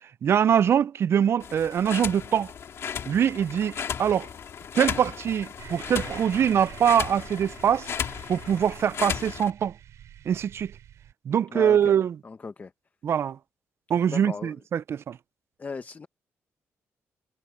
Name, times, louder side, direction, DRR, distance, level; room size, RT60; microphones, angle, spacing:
voice 1, 0.2-2.5 3.1-4.3 4.7-7.9 8.3-9.7 10.3-10.7 11.3-12.1 13.0-13.4 13.9-15.2, right 8 dB, 60° right, 0.4 m, -23 dB
sound 1, 1.4-9.5, left 7 dB, 60° left, 2.0 m, -35 dB
sound 2, 5.6-11.1, right 10 dB, 80° right, 6.2 m, -46 dB
voice 2, 11.5-11.9 12.2-12.7 14.1-14.5 15.6-16.1, left 4 dB, 35° left, 1.1 m, -37 dB
cardioid pair, 90°, 5 cm